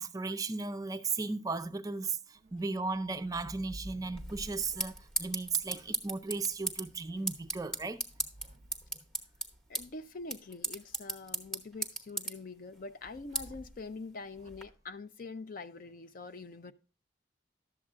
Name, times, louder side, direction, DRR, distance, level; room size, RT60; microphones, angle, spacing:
voice 1, 0.0-8.0, right 4 dB, 20° right, 0.4 m, -36 dB
sound 1, 2.3-6.4 7.4-9.7 13.0-13.9 14.3-14.8, equal, 40° right, 0.8 m, -51 dB
sound 2, 4.2-14.6, right 2 dB, 5° left, 1.0 m, -39 dB
voice 2, 9.7-16.7, left 3 dB, 50° left, 0.5 m, -45 dB
12.0 x 7.4 x 2.4 m
head